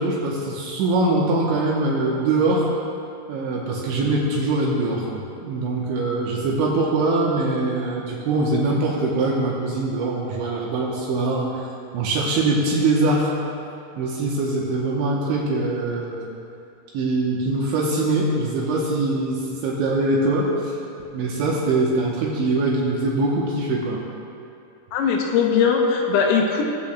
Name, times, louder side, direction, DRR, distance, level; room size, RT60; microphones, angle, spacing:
voice 1, 0.0-2.7 3.3-11.6 11.9-13.3 14.0-16.3 16.9-20.7 21.1-24.0, right 2 dB, 75° right, -4 dB, 3.0 m, -23 dB
voice 2, 24.9-26.6, left 6 dB, 85° left, 2 dB, 3.5 m, -19 dB
21.5 x 8.0 x 2.3 m, 2.6 s
omnidirectional pair, 5.9 m